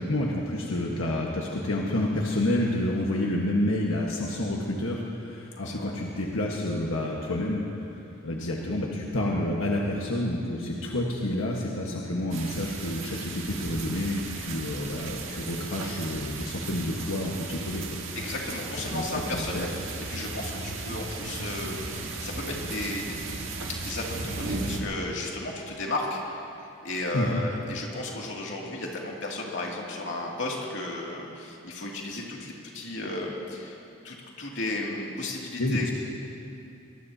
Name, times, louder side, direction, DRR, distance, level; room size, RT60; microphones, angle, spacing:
voice 1, 0.0-7.6 7.9-17.8 18.9-19.0 19.3-19.8 27.1-27.4 35.6-35.9, left 1 dB, 90° left, -2 dB, 1.4 m, -29 dB
voice 2, 5.6-6.0 8.4-8.5 18.1-19.8 20.1-26.5 26.8-33.8 34.0-35.9, left 2 dB, 65° left, -3 dB, 2.5 m, -34 dB
sound 1, 12.3-24.8, right 3 dB, 75° right, 1.6 m, -36 dB
23.5 x 19.5 x 2.8 m, 2.7 s
head